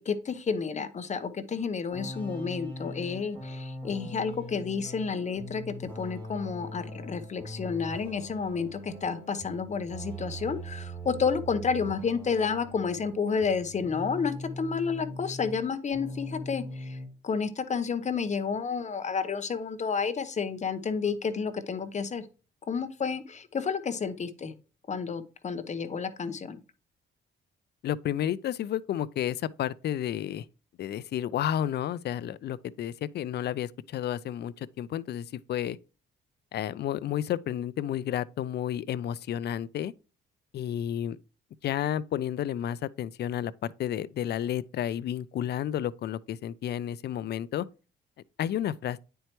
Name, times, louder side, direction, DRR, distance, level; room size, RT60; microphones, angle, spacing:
voice 1, 0.0-17.0 17.2-22.2 22.7-24.5 24.9-26.6, left 5 dB, 35° left, 0.8 m, -30 dB
sound 1, 1.9-15.6 15.9-17.1, equal, 10° left, 3.6 m, -41 dB
voice 2, 27.8-30.5 30.8-35.8 36.5-39.9 40.5-41.2 41.6-47.7 48.4-49.0, left 10 dB, 55° left, 0.4 m, -31 dB
9.2 x 4.5 x 3.0 m
cardioid pair, 90°, 20 cm